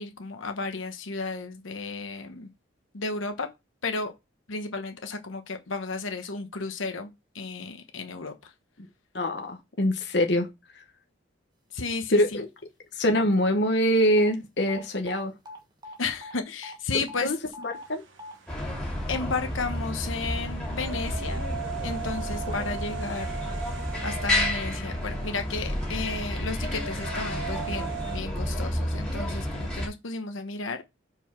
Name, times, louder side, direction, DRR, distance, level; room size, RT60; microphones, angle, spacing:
voice 1, 0.0-2.5 2.9-3.5 3.8-4.1 4.5-7.1 7.3-8.5 11.7-12.4 16.0-17.3 19.1-21.4 21.8-23.3 23.8-30.8, left 4 dB, 80° left, 1.1 m, -33 dB
voice 2, 9.1-10.5 12.1-12.5 12.9-15.3 17.2-17.4 17.6-18.0, equal, 55° left, 1.1 m, -24 dB
sound 1, 14.2-14.3 14.7-14.8 15.1-15.6 15.8-16.0 16.2-16.3 16.6-16.7 17.1-17.2 17.5-17.8 18.2-18.3, left 2 dB, 20° right, 1.4 m, -41 dB
sound 2, 17.7-28.2, right 8 dB, 75° right, 1.2 m, -40 dB
sound 3, 18.5-29.9, left 1 dB, 5° left, 2.6 m, -31 dB
5.3 x 4.7 x 5.9 m
head